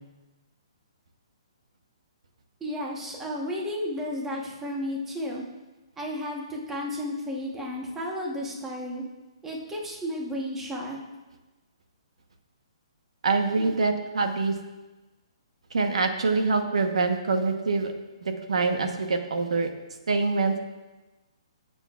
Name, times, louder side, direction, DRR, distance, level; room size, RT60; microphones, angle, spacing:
voice 1, 2.6-5.4 6.0-9.0 9.4-11.0 13.5-13.7, left 1 dB, 10° right, -2 dB, 1.2 m, -33 dB
voice 2, 13.2-14.5 15.7-17.9 18.2-19.7 20.1-20.6, right 4 dB, 90° right, 5 dB, 1.1 m, -25 dB
15.0 x 6.8 x 2.5 m, 1.1 s
hypercardioid pair, 165°, 3 cm